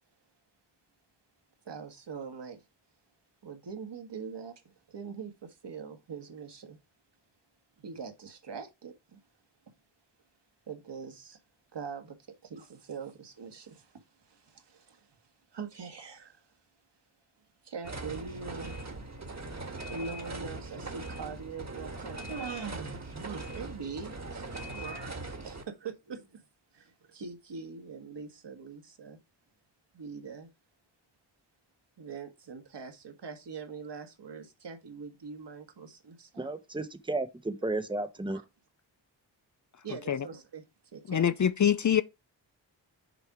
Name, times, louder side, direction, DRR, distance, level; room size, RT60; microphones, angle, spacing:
voice 1, 1.6-2.6 3.4-4.6 4.9-6.8 7.8-9.2 10.7-11.4 11.7-12.2 12.4-15.2 15.5-16.5 17.6-18.7 19.9-26.4 26.7-29.2 29.9-30.5 32.0-36.5 38.3-38.4 39.8-40.6 40.9-41.3, right 5 dB, 65° right, 1.8 m, -43 dB
sound 1, 17.8-25.6, right 2 dB, 35° right, 1.7 m, -40 dB
voice 2, 36.4-38.4, right 2 dB, 10° right, 1.0 m, -33 dB
voice 3, 41.1-42.0, left 9 dB, 40° left, 0.5 m, -24 dB
6.9 x 4.4 x 4.8 m
cardioid pair, 65°, 46 cm